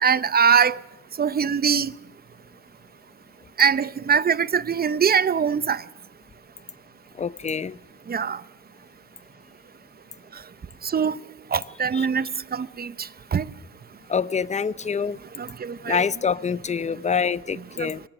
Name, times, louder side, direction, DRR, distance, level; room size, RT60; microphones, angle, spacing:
voice 1, 0.0-0.8 1.2-1.9 3.6-5.8 8.1-8.4 10.8-11.2 11.5-13.5 15.4-16.0 17.8-17.9, right 7 dB, 30° right, 0.7 m, -22 dB
voice 2, 7.2-7.8 11.9-12.1 14.1-15.2 15.9-18.0, left 6 dB, 25° left, 0.6 m, -26 dB
23.5 x 18.0 x 6.1 m
cardioid pair, 90°, 30 cm